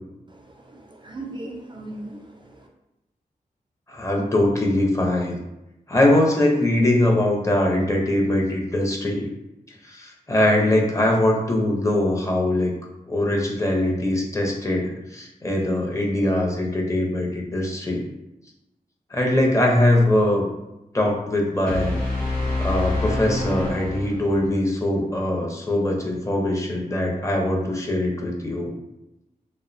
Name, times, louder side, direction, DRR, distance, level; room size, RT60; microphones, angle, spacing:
voice 1, 0.3-2.7, right 2 dB, 30° right, 0 dB, 0.4 m, -38 dB
voice 2, 3.9-5.4 5.9-9.3 9.9-12.7 13.1-18.1 19.1-20.5 20.9-21.9 22.6-28.7, left 1 dB, 20° left, -1 dB, 0.6 m, -22 dB
sound 1, 21.7-24.6, left 2 dB, 70° left, 1.0 m, -26 dB
2.5 x 2.0 x 2.5 m, 0.92 s
cardioid pair, 60°, 15 cm